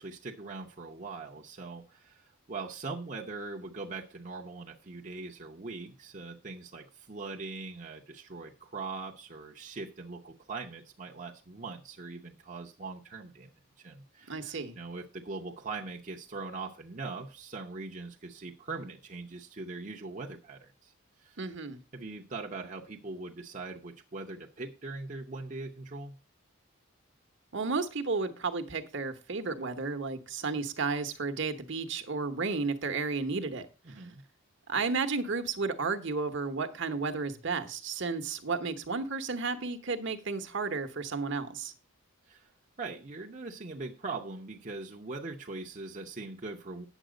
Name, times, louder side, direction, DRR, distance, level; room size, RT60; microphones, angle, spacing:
voice 1, 0.0-13.5 13.8-20.9 21.2-21.4 21.9-26.1 33.9-34.2 42.3-42.5 42.8-46.9, right 3 dB, 35° right, 0 dB, 0.8 m, -41 dB
voice 2, 14.3-14.7 21.4-21.8 27.5-33.7 34.7-41.7, right 4 dB, 55° right, 8 dB, 1.0 m, -32 dB
9.1 x 7.3 x 5.0 m, 0.32 s
head